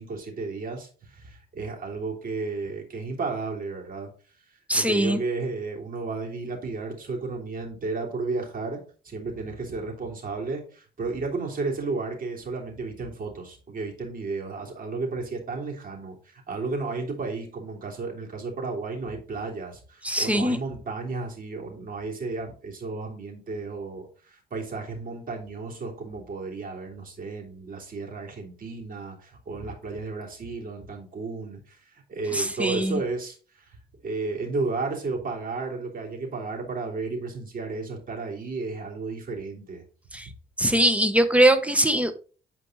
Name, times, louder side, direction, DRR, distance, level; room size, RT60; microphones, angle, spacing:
voice 1, 0.0-4.1 4.5-8.8 9.0-33.8 34.0-39.8, right 3 dB, 45° right, 3.2 m, -33 dB
voice 2, 4.7-5.2 20.0-20.6 32.3-33.0 40.1-40.3 40.6-42.2, right 1 dB, 5° right, 1.1 m, -21 dB
9.1 x 4.6 x 3.9 m
cardioid pair, 90°, 20 cm